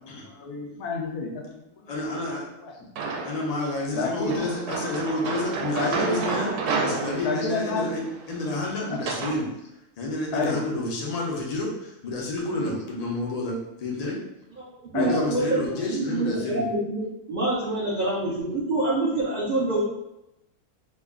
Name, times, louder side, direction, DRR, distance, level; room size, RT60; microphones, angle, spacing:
voice 1, 0.0-2.2 2.6-2.7 3.9-4.4 5.7-6.2 7.2-7.8 10.3-10.6 14.9-15.2, left 3 dB, 85° left, 1 dB, 1.2 m, -30 dB
voice 2, 1.9-2.5 3.2-6.5 6.8-9.5 10.0-14.2 14.9-16.6, left 2 dB, 50° left, -2 dB, 0.5 m, -29 dB
sound 1, 3.0-3.6 4.3-9.4, right 4 dB, 85° right, 1.2 m, -31 dB
voice 3, 14.6-19.8, right 2 dB, 55° right, -8 dB, 0.6 m, -26 dB
2.9 x 2.3 x 3.6 m, 0.89 s
omnidirectional pair, 1.6 m